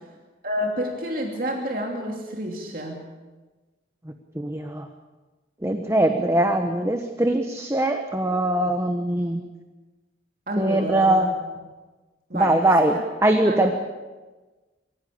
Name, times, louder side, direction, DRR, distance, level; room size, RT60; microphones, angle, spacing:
voice 1, 0.4-3.1 10.5-11.2 12.3-13.0 13.4-13.7, equal, 50° right, 0 dB, 2.8 m, -29 dB
voice 2, 4.3-4.9 5.6-9.4 10.6-11.3 12.3-13.7, right 1 dB, 15° right, 5 dB, 1.1 m, -21 dB
24.5 x 16.0 x 8.6 m, 1.2 s
head